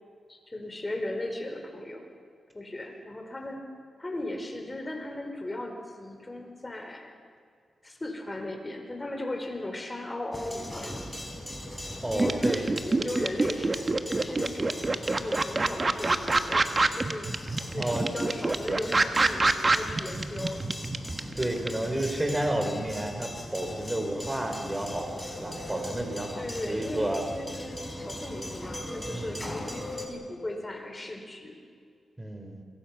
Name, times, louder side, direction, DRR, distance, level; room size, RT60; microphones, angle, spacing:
voice 1, 0.3-2.0 2.5-3.6 4.0-7.1 7.8-11.0 12.1-14.8 15.2-20.6 26.3-31.5, left 1 dB, 20° left, 3 dB, 4.8 m, -37 dB
sound 1, 10.3-30.1, left 1 dB, 5° left, 4.3 m, -40 dB
voice 2, 12.0-12.7 17.6-18.1 21.4-27.2 29.1-29.6 32.2-32.6, right 1 dB, 15° right, 4 dB, 4.2 m, -31 dB
sound 2, 12.2-21.7, right 3 dB, 30° right, 1.4 m, -25 dB
27.5 x 23.5 x 6.0 m, 2.2 s
cardioid pair, 85°, 0 cm